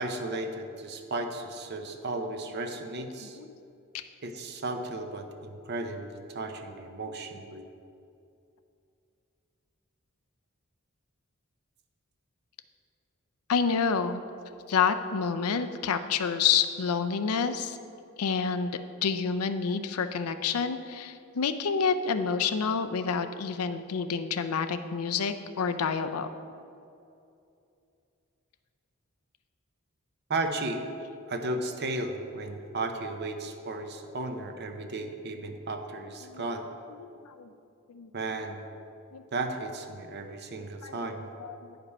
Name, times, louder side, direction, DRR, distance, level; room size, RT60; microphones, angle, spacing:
voice 1, 0.0-3.4 4.2-7.6 30.3-30.8 31.3-36.7 38.1-38.6 39.3-41.3, right 2 dB, 50° right, 6 dB, 0.7 m, -34 dB
voice 2, 13.5-14.2 14.7-17.8 18.2-26.3 36.2-36.5 37.0-37.5 37.9-38.1 39.1-39.2 40.8-41.7, left 6 dB, 90° left, 9 dB, 0.5 m, -28 dB
9.7 x 5.2 x 5.3 m, 2.6 s
head